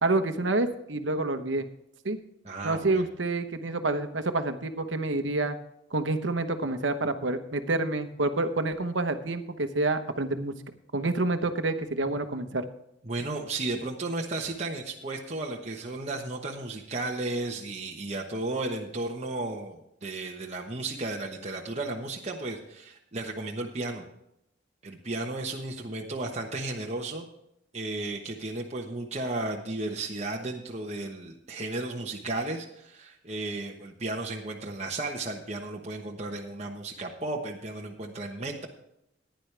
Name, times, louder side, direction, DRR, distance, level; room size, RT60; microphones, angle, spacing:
voice 1, 0.0-1.7 2.0-2.2 2.6-5.6 5.9-10.5 10.9-12.6, right 2 dB, 85° right, 9 dB, 1.1 m, -28 dB
voice 2, 2.4-3.1 13.0-24.0 24.8-27.3 27.7-38.7, right 2 dB, 35° right, 0 dB, 1.1 m, -34 dB
15.0 x 10.5 x 3.4 m, 0.80 s
head